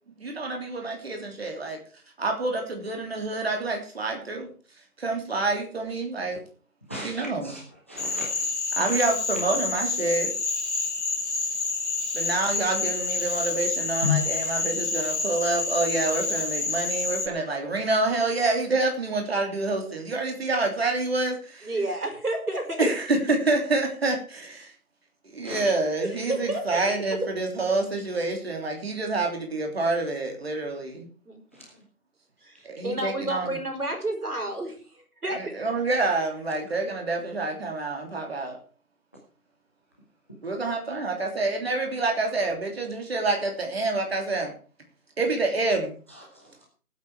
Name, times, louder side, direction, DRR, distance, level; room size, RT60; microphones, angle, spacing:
voice 1, 0.2-1.8 2.2-4.5 5.0-6.4 6.9-7.5 8.7-10.3 12.1-21.7 22.8-24.7 25.2-31.1 32.6-33.6 35.3-38.6 40.4-44.5 45.2-45.9, right 3 dB, 45° right, 2 dB, 3.3 m, -27 dB
voice 2, 6.9-7.6 7.9-8.5 14.0-14.2 25.4-25.9 31.5-31.7 46.1-46.6, left 7 dB, 10° left, -2 dB, 1.0 m, -33 dB
Cricket / Frog, 8.0-17.3, left 3 dB, 50° left, 2.3 m, -28 dB
voice 3, 21.6-22.9 26.0-26.8 31.3-31.4 32.4-35.5, right 1 dB, 85° right, 4 dB, 5.6 m, -30 dB
18.0 x 8.4 x 4.8 m, 0.40 s
figure-of-eight pair, 165°, 44 cm